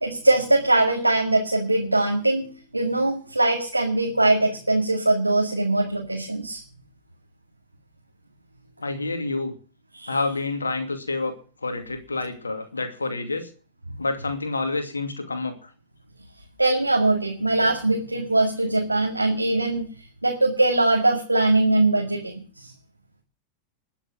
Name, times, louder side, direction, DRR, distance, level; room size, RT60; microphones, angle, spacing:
voice 1, 0.0-6.6 9.9-10.2 16.6-19.8 20.2-22.7, right 2 dB, 85° right, 0 dB, 2.2 m, -22 dB
voice 2, 8.8-9.5 10.1-11.4 11.6-13.5 14.0-15.7, left 3 dB, 75° left, 8 dB, 2.4 m, -28 dB
20.5 x 7.2 x 6.4 m, 0.39 s
figure-of-eight pair, 90°, 0 cm